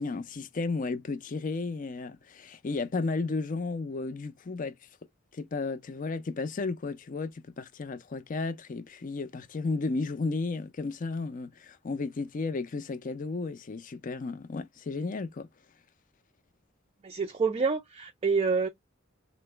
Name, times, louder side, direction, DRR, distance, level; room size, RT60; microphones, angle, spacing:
voice 1, 0.0-4.7 5.3-15.5, left 3 dB, 40° left, 0.4 m, -33 dB
voice 2, 17.0-18.7, right 4 dB, 30° right, 0.4 m, -27 dB
3.9 x 2.0 x 3.2 m
head